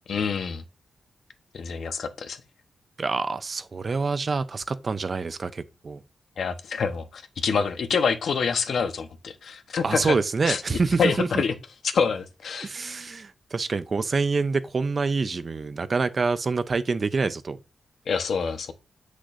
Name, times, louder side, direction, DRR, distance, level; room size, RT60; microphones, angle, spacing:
voice 1, 0.1-0.6 1.5-2.4 6.4-10.2 10.4-11.5 11.8-12.7 18.1-18.7, left 5 dB, 70° left, 1.0 m, -26 dB
voice 2, 3.0-6.0 9.8-11.3 12.6-17.6, right 4 dB, 40° right, 0.6 m, -26 dB
8.1 x 6.4 x 2.6 m
wide cardioid pair, 110°, 0 cm